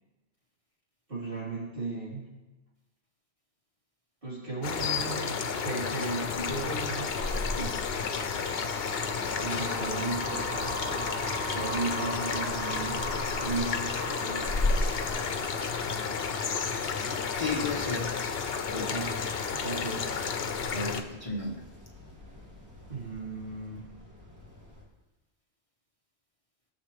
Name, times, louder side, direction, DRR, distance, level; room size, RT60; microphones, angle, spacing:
voice 1, 1.1-2.3 4.2-7.2 7.5-7.8 9.4-11.1 11.5-14.7 18.9-19.2 19.5-20.3 22.9-23.9, right 3 dB, 55° right, -8 dB, 4.1 m, -36 dB
sound 1, 4.6-21.0, left 6 dB, 70° left, 1.0 m, -32 dB
sound 2, 6.2-24.8, left 1 dB, 15° right, 2.5 m, -39 dB
sound 3, 7.0-16.4, right 3 dB, 90° right, 1.2 m, -41 dB
voice 2, 16.6-17.0 17.3-18.1 18.7-18.9 20.7-21.6, left 3 dB, 35° left, -1 dB, 1.0 m, -34 dB
18.0 x 6.9 x 3.4 m, 1.1 s
omnidirectional pair, 1.1 m